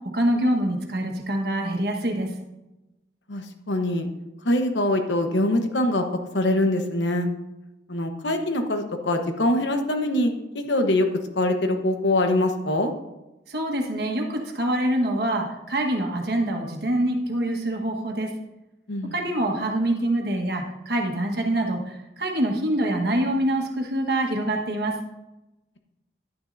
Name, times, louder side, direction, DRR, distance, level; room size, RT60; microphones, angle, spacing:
voice 1, 0.1-2.3 13.5-18.3 19.1-24.9, right 1 dB, 60° right, 2 dB, 1.4 m, -25 dB
voice 2, 3.3-4.1 4.4-6.0 6.3-7.3 7.9-11.1 11.4-12.9 18.9-19.1, left 1 dB, 85° left, 5 dB, 1.1 m, -23 dB
11.0 x 9.6 x 2.6 m, 0.97 s
head